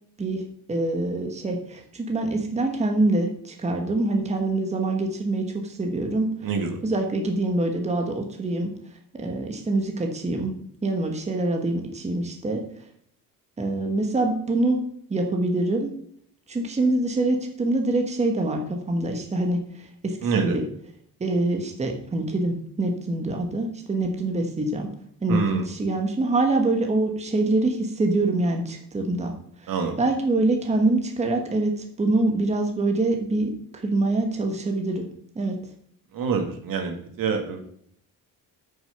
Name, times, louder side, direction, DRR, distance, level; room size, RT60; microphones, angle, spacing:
voice 1, 0.7-6.3 6.8-8.7 9.1-10.5 10.8-12.6 13.6-14.8 15.1-15.9 16.5-20.6 21.2-24.9 25.2-29.3 29.6-29.7 30.0-35.1 35.3-35.6, right 2 dB, 20° right, 3 dB, 1.3 m, -25 dB
voice 2, 6.4-6.8 20.2-20.6 25.3-25.7 29.7-30.0 36.1-37.6, right 5 dB, 70° right, 4 dB, 2.1 m, -26 dB
8.8 x 6.4 x 5.8 m, 0.67 s
cardioid pair, 145°, 35 cm